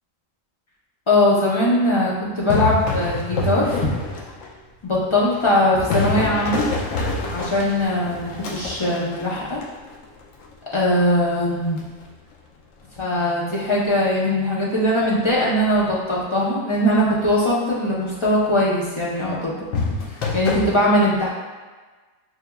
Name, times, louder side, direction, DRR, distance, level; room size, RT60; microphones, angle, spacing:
voice 1, 1.1-3.9 4.8-6.7 7.3-9.6 10.7-11.8 13.0-19.6 20.1-21.3, left 1 dB, 40° left, -6 dB, 0.4 m, -20 dB
sound 1, 2.3-4.5 5.0-10.0 11.8-12.0 19.7-20.7, left 3 dB, 75° left, 0.9 m, -26 dB
6.3 x 2.2 x 2.2 m, 1.3 s
omnidirectional pair, 1.4 m